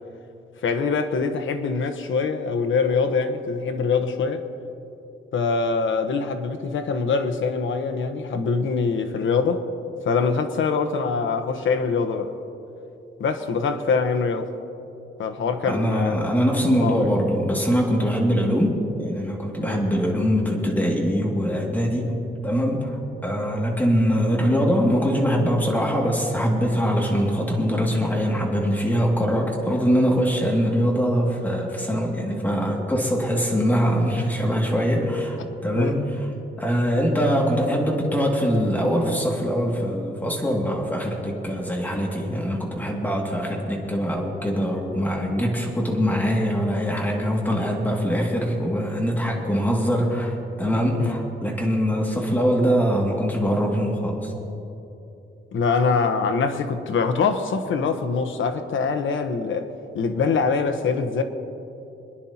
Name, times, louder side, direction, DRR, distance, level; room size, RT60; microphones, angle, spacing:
voice 1, 0.6-4.4 5.3-9.6 10.0-12.3 13.2-14.5 15.2-16.2 16.8-17.1 19.6-19.8 35.7-36.0 50.8-51.1 55.5-61.2, left 5 dB, 75° left, 7 dB, 1.0 m, -24 dB
voice 2, 15.7-36.0 36.6-54.3, equal, 10° left, -2 dB, 2.2 m, -23 dB
27.0 x 10.5 x 2.9 m, 2.8 s
wide cardioid pair, 125°, 20 cm